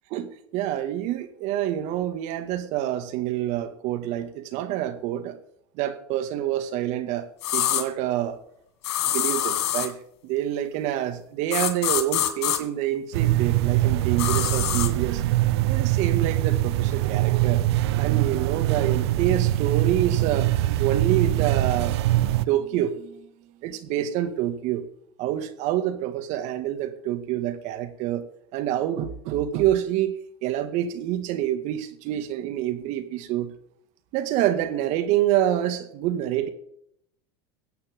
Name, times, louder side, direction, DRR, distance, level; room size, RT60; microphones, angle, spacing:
voice 1, 0.1-5.4 5.7-8.4 9.1-15.2 15.7-17.7 18.0-23.3 23.6-24.9 25.2-28.2 28.5-30.1 30.4-33.5 34.1-36.5, right 12 dB, 60° right, 2.2 m, -27 dB
sound 1, 7.4-7.8 8.8-9.9 11.5-12.6 14.2-14.9, left 12 dB, 80° left, 2.5 m, -25 dB
sound 2, 13.1-22.5, right 15 dB, 80° right, 0.7 m, -23 dB
22.0 x 8.8 x 3.8 m
supercardioid pair, 100°, 14 cm